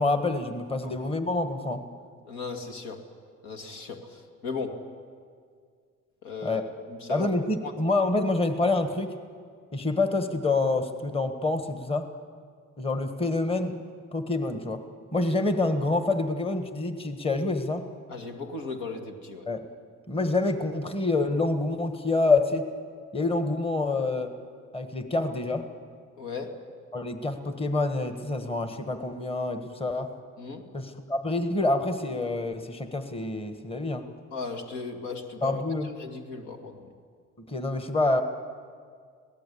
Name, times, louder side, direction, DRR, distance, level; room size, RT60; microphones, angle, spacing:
voice 1, 0.0-1.8 6.4-6.6 7.1-9.1 9.7-12.1 12.8-13.8 14.1-14.8 15.1-17.8 19.5-19.7 20.1-22.7 23.1-24.3 24.7-25.6 26.9-30.1 30.7-34.0 35.4-35.9 37.5-38.2, left 2 dB, 20° left, 8 dB, 1.5 m, -27 dB
voice 2, 2.3-3.0 3.4-4.9 6.2-6.6 6.9-7.3 7.6-7.7 18.1-19.5 26.2-26.6 30.4-30.7 34.3-36.9, left 4 dB, 85° left, 5 dB, 2.4 m, -37 dB
26.0 x 18.0 x 8.5 m, 2.1 s
cardioid pair, 105°, 29 cm